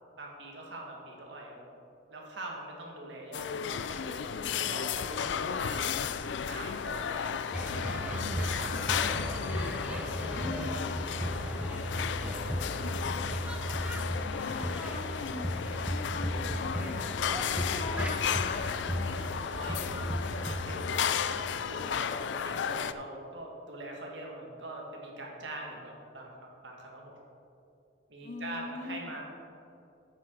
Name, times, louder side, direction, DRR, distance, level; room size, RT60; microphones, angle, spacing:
voice 1, 0.2-1.6 2.1-4.3 4.5-6.0 6.4-7.4 7.6-9.3 9.6-11.8 12.2-13.5 19.2-27.2 28.1-29.2, right 1 dB, 85° right, -1 dB, 2.0 m, -44 dB
sound 1, 3.3-22.9, left 7 dB, 75° left, 0.4 m, -34 dB
sound 2, 7.5-20.6, equal, 5° right, 0.6 m, -35 dB
voice 2, 10.3-10.9 14.4-18.7 28.2-29.1, left 3 dB, 45° left, 7 dB, 0.8 m, -42 dB
9.6 x 7.6 x 4.7 m, 2.6 s
head